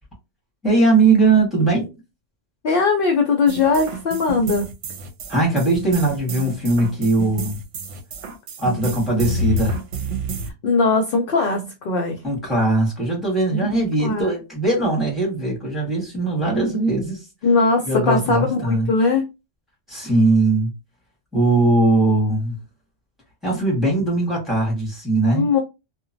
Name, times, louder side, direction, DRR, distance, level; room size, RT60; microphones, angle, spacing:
voice 1, 0.6-1.9 5.3-7.6 8.6-9.8 12.2-17.2 17.9-18.9 19.9-20.7 21.3-22.5 23.4-25.5, right 2 dB, ahead, 1.4 m, -20 dB
voice 2, 2.6-4.7 10.6-12.2 13.5-13.7 14.0-14.3 17.4-19.2 25.3-25.6, left 4 dB, 60° left, 0.6 m, -20 dB
sound 1, 3.5-10.5, right 1 dB, 80° right, 0.9 m, -29 dB
2.9 x 2.2 x 2.6 m
omnidirectional pair, 1.2 m